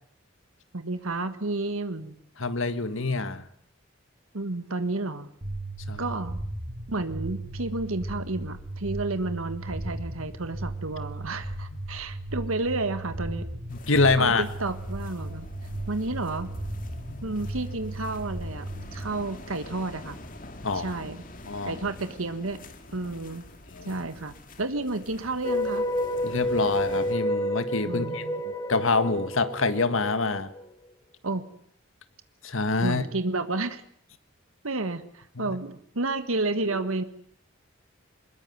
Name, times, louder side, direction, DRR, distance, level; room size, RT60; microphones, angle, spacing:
voice 1, 0.7-2.2 4.3-5.3 6.0-6.4 6.9-13.4 14.2-15.5 15.9-16.5 17.2-20.2 20.7-21.2 21.6-22.6 22.9-23.4 23.8-25.9 27.8-28.4 31.2-31.4 32.8-33.8 34.6-37.0, right 2 dB, 85° right, 10 dB, 1.6 m, -31 dB
voice 2, 2.4-3.4 5.9-6.0 13.7-14.4 17.1-17.3 20.6-21.0 21.5-21.8 23.7-23.9 26.2-28.2 28.7-30.5 32.4-33.0 35.4-35.5, left 3 dB, 75° left, 11 dB, 1.8 m, -26 dB
sound 1, 5.4-19.1, right 2 dB, 35° right, 2.5 m, -36 dB
sound 2, 13.7-27.2, left 1 dB, 40° left, 2.4 m, -46 dB
sound 3, 25.4-30.6, left 1 dB, 15° left, 1.1 m, -29 dB
21.0 x 21.0 x 9.3 m, 0.63 s
head